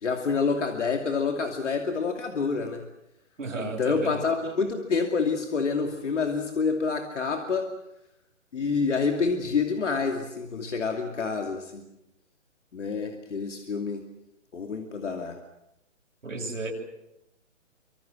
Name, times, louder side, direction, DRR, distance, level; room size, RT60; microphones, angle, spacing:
voice 1, 0.0-2.8 3.6-7.7 8.5-11.8 12.7-14.0 14.5-15.4, left 4 dB, 65° left, 4 dB, 2.7 m, -27 dB
voice 2, 3.4-4.2 16.2-16.7, right 3 dB, 80° right, 1 dB, 7.7 m, -33 dB
26.0 x 25.0 x 6.4 m, 0.84 s
hypercardioid pair, 155°, 39 cm